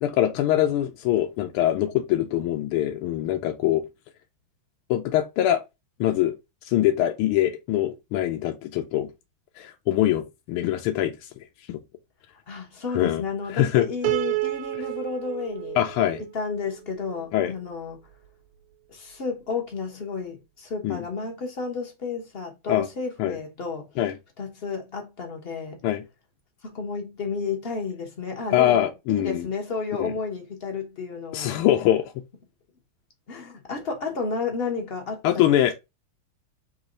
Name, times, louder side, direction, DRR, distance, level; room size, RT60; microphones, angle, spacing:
voice 1, 0.0-3.8 4.9-5.6 6.0-6.4 6.7-9.1 9.6-11.1 11.7-11.8 12.9-13.2 13.5-13.9 15.8-16.2 17.3-17.5 20.8-21.0 22.7-22.9 23.2-23.3 24.0-24.1 25.8-26.0 28.5-29.5 30.0-30.1 31.3-32.1 35.2-35.7, left 12 dB, 80° left, 1.5 m, -23 dB
voice 2, 12.5-15.8 16.3-18.0 18.9-23.9 24.4-25.8 26.6-31.7 33.3-35.6, left 4 dB, 50° left, 0.7 m, -32 dB
Piano, 14.0-17.3, right 19 dB, 90° right, 1.5 m, -31 dB
4.1 x 3.1 x 3.8 m
omnidirectional pair, 2.4 m